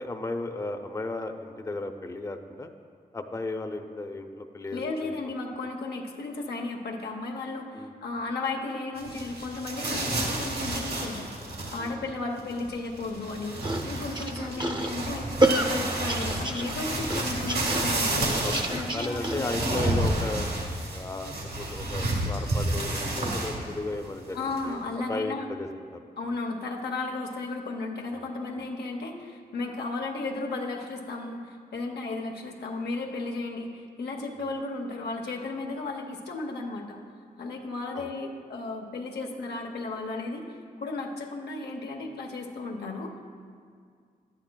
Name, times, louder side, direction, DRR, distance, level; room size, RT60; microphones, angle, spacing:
voice 1, 0.0-2.7 3.1-5.1 7.7-7.9 11.8-12.0 14.4-14.5 18.4-20.5 20.9-26.0 28.1-28.2 34.4-34.5 37.9-38.1, left 2 dB, 20° left, 6 dB, 0.5 m, -35 dB
voice 2, 4.7-18.3 18.7-19.5 24.3-25.5 26.2-37.0 37.4-40.4 40.8-43.2, left 3 dB, 90° left, 1 dB, 0.7 m, -34 dB
sound 1, 9.0-12.1 12.4-23.7 24.1-24.2 24.5-24.7, right 1 dB, 80° right, 1.5 m, -30 dB
sound 2, 13.6-19.6, right 1 dB, 25° right, 0.6 m, -29 dB
11.0 x 8.8 x 2.2 m, 2.1 s
cardioid pair, 60°, 16 cm